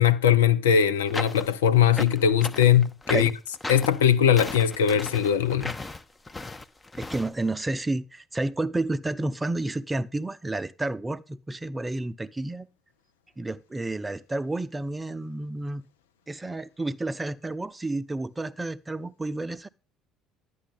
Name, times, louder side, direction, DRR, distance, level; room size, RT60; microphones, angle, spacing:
voice 1, 0.0-3.3 3.7-5.7, left 9 dB, 75° left, 0.6 m, -20 dB
sound 1, 1.1-7.3, left 2 dB, 15° left, 0.9 m, -36 dB
voice 2, 7.0-12.7 13.4-15.8 16.3-19.7, right 2 dB, 15° right, 0.7 m, -30 dB
11.5 x 9.4 x 3.4 m
figure-of-eight pair, 55°, 0 cm